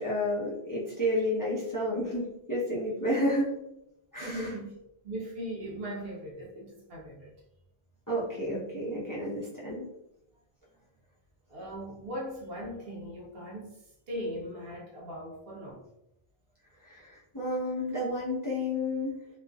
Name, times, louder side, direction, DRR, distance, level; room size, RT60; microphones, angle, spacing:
voice 1, 0.0-3.5 4.1-4.5 8.1-9.8 16.8-19.2, left 1 dB, 20° left, -7 dB, 0.6 m, -31 dB
voice 2, 4.2-7.3 11.5-15.9, equal, 70° right, -1 dB, 0.9 m, -39 dB
3.1 x 2.5 x 2.2 m, 0.84 s
omnidirectional pair, 1.1 m